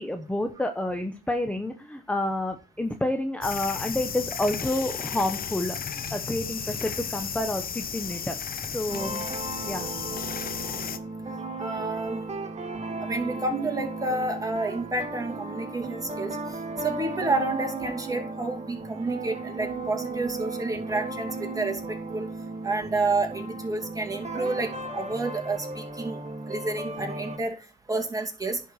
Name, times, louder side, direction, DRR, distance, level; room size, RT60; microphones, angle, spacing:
voice 1, 0.0-8.4 8.7-9.3 9.6-9.9, left 1 dB, 5° left, 6 dB, 0.9 m, -29 dB
sound 1, 3.4-11.0, left 7 dB, 45° left, 1.0 m, -34 dB
sound 2, 8.9-27.4, right 2 dB, 35° right, 1.8 m, -35 dB
voice 2, 11.6-12.2 13.0-16.4 16.8-22.3 22.6-27.6 27.9-28.6, right 2 dB, 15° right, 2 dB, 2.7 m, -30 dB
10.5 x 4.5 x 6.3 m, 0.34 s
cardioid pair, 90°, 20 cm